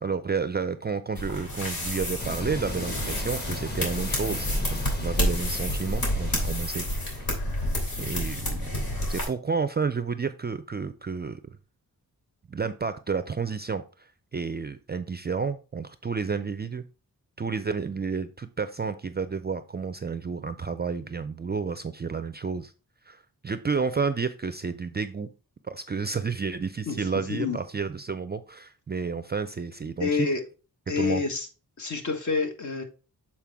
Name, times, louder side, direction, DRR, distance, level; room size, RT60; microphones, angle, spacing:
voice 1, 0.0-7.3 8.0-11.4 12.5-16.8 17.4-22.7 23.1-25.3 25.6-30.3 31.0-31.2, right 5 dB, 30° right, 11 dB, 0.4 m, -31 dB
sound 1, 1.2-9.2, left 1 dB, 70° left, 2.9 m, -29 dB
sound 2, 2.2-7.4, left 1 dB, 25° left, 1.4 m, -37 dB
voice 2, 30.0-30.4 30.9-31.5 31.8-32.8, left 5 dB, 50° left, 5 dB, 1.4 m, -27 dB
7.4 x 4.4 x 3.5 m, 0.34 s
wide cardioid pair, 100°, 37 cm